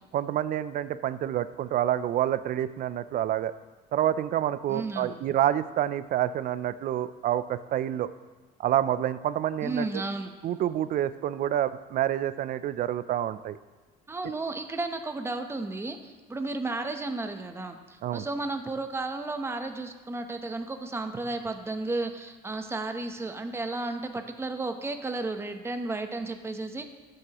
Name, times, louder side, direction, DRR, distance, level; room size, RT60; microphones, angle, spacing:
voice 1, 0.1-3.5 3.9-8.1 8.6-9.9 10.4-13.6 18.0-18.3, right 11 dB, 55° right, 14 dB, 0.5 m, -28 dB
voice 2, 4.7-5.2 9.6-10.3 14.1-26.9, right 2 dB, 15° right, 6 dB, 0.8 m, -33 dB
14.5 x 7.8 x 3.0 m, 1.3 s
cardioid pair, 110°, 17 cm